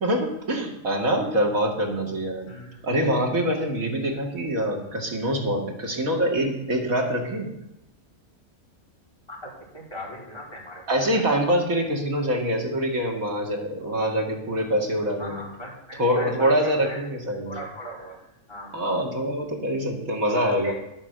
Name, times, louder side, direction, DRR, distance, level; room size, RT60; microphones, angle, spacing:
voice 1, 0.0-2.5 2.8-7.5 10.9-15.4 16.0-17.6 18.7-20.7, equal, 80° right, 1 dB, 2.8 m, -25 dB
voice 2, 2.5-2.8 9.3-11.2 15.2-17.0 17.5-18.2 18.5-18.9 20.3-20.7, equal, 20° left, -5 dB, 4.5 m, -38 dB
11.0 x 9.0 x 8.0 m, 0.86 s
omnidirectional pair, 1.4 m